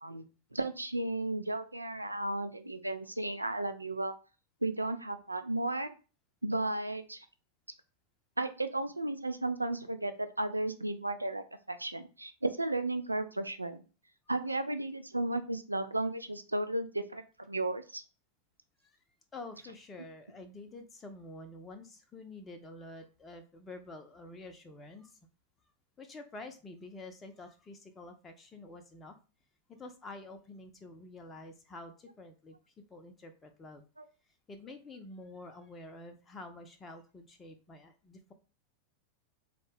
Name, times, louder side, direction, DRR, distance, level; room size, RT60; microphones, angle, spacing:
voice 1, 0.0-4.1 4.6-5.9 6.4-7.3 8.4-13.8 14.3-17.2 17.5-18.0, right 2 dB, 85° right, 9 dB, 0.4 m, -34 dB
voice 2, 19.3-25.2 26.0-29.2 29.7-33.8 34.3-38.3, left 2 dB, 20° left, 6 dB, 0.5 m, -48 dB
4.1 x 2.1 x 3.3 m, 0.34 s
figure-of-eight pair, 90°, 0 cm